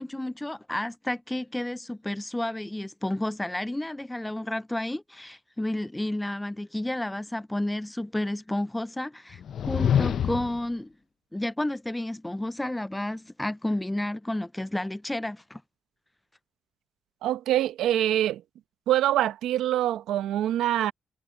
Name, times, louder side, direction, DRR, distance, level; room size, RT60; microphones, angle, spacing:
voice 1, 0.0-9.4 9.7-10.9 11.3-15.6, left 1 dB, 10° left, 0.5 m, -31 dB
sound 1, 9.3-10.7, left 9 dB, 60° left, 0.6 m, -26 dB
voice 2, 17.2-18.4 18.9-20.9, right 12 dB, 85° right, 0.9 m, -24 dB
cardioid pair, 90°, 0 cm